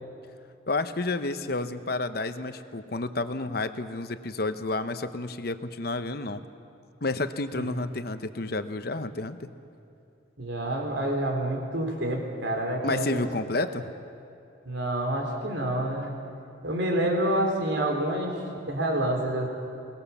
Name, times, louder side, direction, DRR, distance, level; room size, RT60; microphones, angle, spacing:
voice 1, 0.7-6.4 7.0-9.5 12.8-13.9, left 2 dB, 55° left, 10 dB, 0.9 m, -30 dB
voice 2, 10.4-13.2 13.6-13.7 14.7-16.1 16.6-19.5, right 1 dB, 80° right, 2 dB, 3.6 m, -28 dB
22.5 x 19.0 x 7.2 m, 2.6 s
head